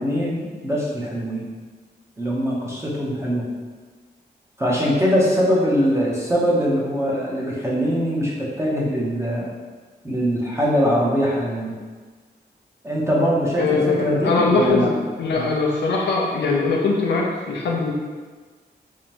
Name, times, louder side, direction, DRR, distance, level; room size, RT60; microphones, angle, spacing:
voice 1, 0.0-1.4 2.2-3.5 4.6-9.5 10.0-11.7 12.8-14.9, equal, 15° right, -5 dB, 0.9 m, -22 dB
voice 2, 13.6-17.9, left 3 dB, 85° left, -1 dB, 0.6 m, -21 dB
3.6 x 3.1 x 3.0 m, 1.4 s
wide cardioid pair, 100°, 18 cm